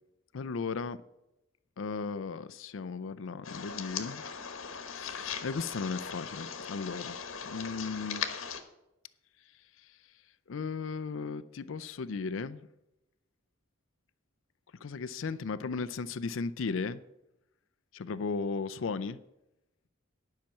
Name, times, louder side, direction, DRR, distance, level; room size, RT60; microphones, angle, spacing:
voice 1, 0.3-1.0 1.8-4.2 4.8-7.1 7.4-8.2 10.5-12.7 14.8-17.0 17.9-19.2, left 4 dB, 70° left, 0.5 m, -36 dB
sound 1, 3.4-8.6, left 7 dB, 85° left, 1.2 m, -39 dB
10.5 x 5.8 x 8.4 m
head